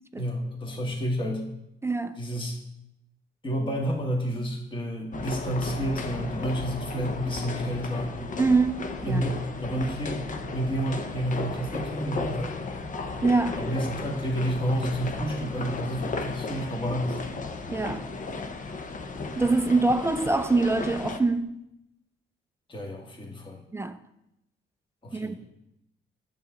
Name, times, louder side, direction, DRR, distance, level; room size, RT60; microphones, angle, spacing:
voice 1, 0.2-1.5 2.2-2.6 3.4-8.2 9.0-12.5 13.6-17.2 22.7-23.6 25.0-25.4, equal, 25° left, 1.6 m, -30 dB
voice 2, 1.8-2.2 8.4-9.2 13.2-13.6 17.7-18.1 19.4-21.6 23.7-24.0 25.1-25.3, right 3 dB, 15° right, 0.4 m, -24 dB
sound 1, 5.1-21.2, left 3 dB, 40° left, 0.8 m, -35 dB
8.5 x 7.1 x 3.8 m
cardioid pair, 90°, 20 cm